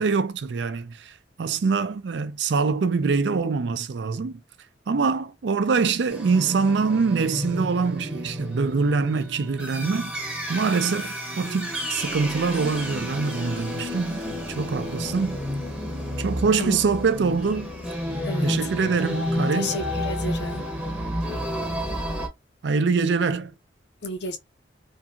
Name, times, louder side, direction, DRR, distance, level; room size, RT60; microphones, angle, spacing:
voice 1, 0.0-4.4 4.9-10.1 10.5-14.2 14.6-15.4 16.2-17.7 18.2-19.7 22.6-23.5, right 4 dB, 70° right, 0.4 m, -24 dB
sound 1, 6.1-22.3, equal, 5° right, 0.7 m, -31 dB
voice 2, 19.5-20.6 24.0-24.4, left 1 dB, 65° left, 0.7 m, -32 dB
2.8 x 2.6 x 2.3 m
head